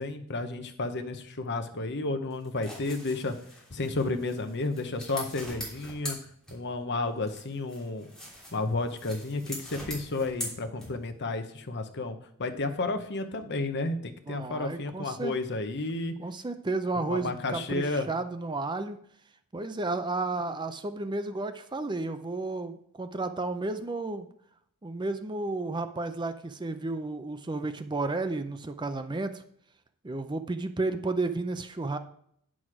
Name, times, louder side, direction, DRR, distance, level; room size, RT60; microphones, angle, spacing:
voice 1, 0.0-3.3 3.7-6.2 6.5-8.1 8.5-16.1 16.9-18.1, left 2 dB, 50° left, 8 dB, 0.9 m, -32 dB
sound 1, 2.3-6.9 7.2-11.2, equal, 5° left, 3.0 m, -42 dB
voice 2, 14.3-15.3 16.2-19.0 19.5-24.3 24.8-29.4 30.0-32.0, right 3 dB, 20° right, 9 dB, 0.5 m, -32 dB
9.3 x 6.2 x 4.9 m, 0.67 s
head